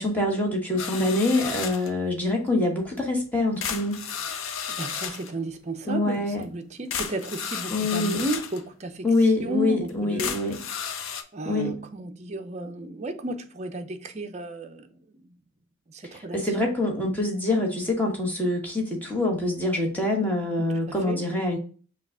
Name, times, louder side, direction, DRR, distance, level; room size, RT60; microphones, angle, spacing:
voice 1, 0.0-4.0 5.8-6.4 7.7-8.2 9.0-10.6 11.4-11.8 16.3-21.6, left 2 dB, 10° left, 1.2 m, -25 dB
sound 1, 0.8-1.9 3.0-3.1 3.6-5.3 6.4-6.5 6.9-8.6 9.2-9.3 9.9-10.0 10.2-11.2, left 7 dB, 70° left, 0.6 m, -33 dB
voice 2, 4.3-10.3 11.3-15.4 15.9-16.5 20.6-21.2, right 1 dB, 30° right, 0.6 m, -34 dB
5.7 x 2.4 x 3.6 m
head